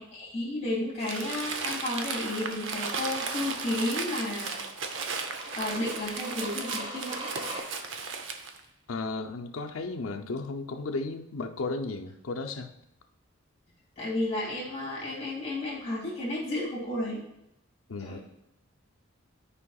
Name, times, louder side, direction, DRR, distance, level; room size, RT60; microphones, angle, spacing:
voice 1, 0.1-4.6 5.6-7.2 14.0-17.2 18.0-18.2, left 1 dB, 35° left, -6 dB, 2.2 m, -32 dB
Crumpling crinkling, 1.0-8.6, right 5 dB, 70° right, 0.7 m, -35 dB
sound 1, 4.3-7.6, right 1 dB, 25° right, 1.4 m, -41 dB
voice 2, 8.9-12.7 17.9-18.2, left 3 dB, 85° left, 5 dB, 0.6 m, -34 dB
11.0 x 4.9 x 2.3 m, 0.83 s
head